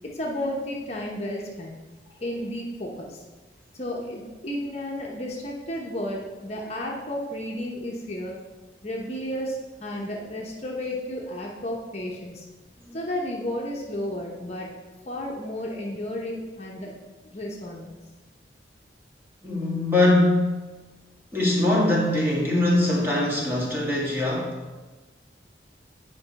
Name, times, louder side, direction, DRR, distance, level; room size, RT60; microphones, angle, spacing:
voice 1, 0.0-1.8 2.2-3.2 3.7-8.3 8.8-12.4 12.9-14.7 15.1-17.0 17.3-17.9, left 1 dB, 35° left, -2 dB, 0.9 m, -32 dB
voice 2, 19.4-20.6 21.3-24.6, left 1 dB, 15° right, -5 dB, 1.8 m, -22 dB
9.4 x 5.4 x 4.1 m, 1.2 s
head